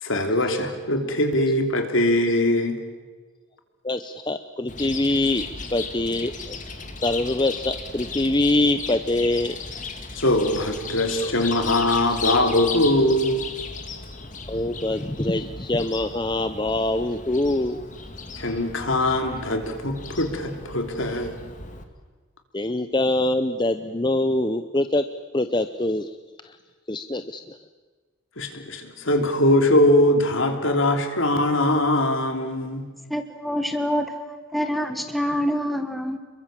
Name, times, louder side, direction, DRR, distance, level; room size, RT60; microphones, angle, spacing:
voice 1, 0.0-2.8 10.1-13.4 18.4-21.4 28.4-32.8, left 1 dB, 70° left, 5 dB, 3.2 m, -22 dB
voice 2, 3.8-6.6 7.0-9.6 11.2-11.3 12.1-12.2 14.5-17.8 22.5-25.0 25.3-26.1 26.4-26.5 26.9-27.4, left 2 dB, 20° left, 9 dB, 0.7 m, -24 dB
Chirp tweet, 4.7-21.8, left 4 dB, 35° left, 2.2 m, -36 dB
voice 3, 33.1-36.2, equal, ahead, 7 dB, 1.3 m, -26 dB
29.0 x 22.5 x 7.6 m, 1.4 s
head